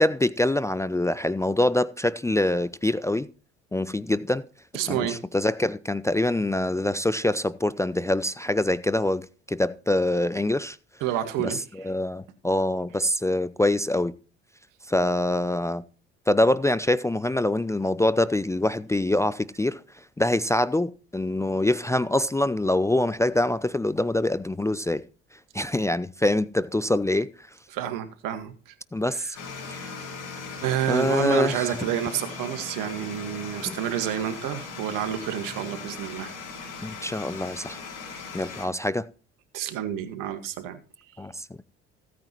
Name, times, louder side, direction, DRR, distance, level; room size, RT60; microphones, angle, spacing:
voice 1, 0.0-3.3 3.7-4.4 4.9-10.8 11.4-14.1 14.9-15.8 16.3-25.0 25.5-27.5 28.9-29.4 29.7-29.9 30.9-31.8 33.7-33.8 36.8-37.8 38.3-39.1 41.2-41.5, left 1 dB, 10° left, 0.5 m, -25 dB
voice 2, 4.7-5.2 11.0-11.6 27.7-28.7 29.1-29.3 30.6-36.4 39.5-40.8, right 11 dB, 65° right, 1.8 m, -29 dB
sound 1, 29.3-38.7, left 4 dB, 65° left, 5.4 m, -39 dB
15.5 x 9.3 x 3.0 m
hypercardioid pair, 60°, 34 cm